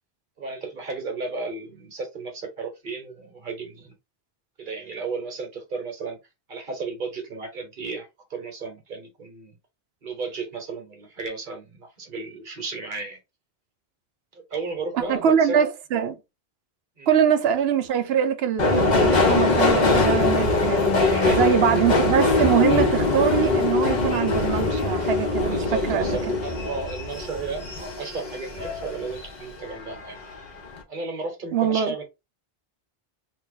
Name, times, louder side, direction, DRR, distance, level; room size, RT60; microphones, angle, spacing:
voice 1, 0.4-3.9 4.6-6.2 6.5-9.5 10.0-13.2 14.3-15.6 17.0-17.1 20.5-21.7 25.5-30.2 30.9-32.0, right 3 dB, 55° right, 1.4 m, -34 dB
voice 2, 14.9-16.2 17.1-20.8 21.3-26.1 31.5-31.9, right 8 dB, 80° right, 0.9 m, -23 dB
Subway metro underground, 18.6-29.3 29.7-30.4 30.7-30.8, left 3 dB, 45° left, 1.1 m, -22 dB
3.0 x 2.8 x 3.8 m
omnidirectional pair, 1.0 m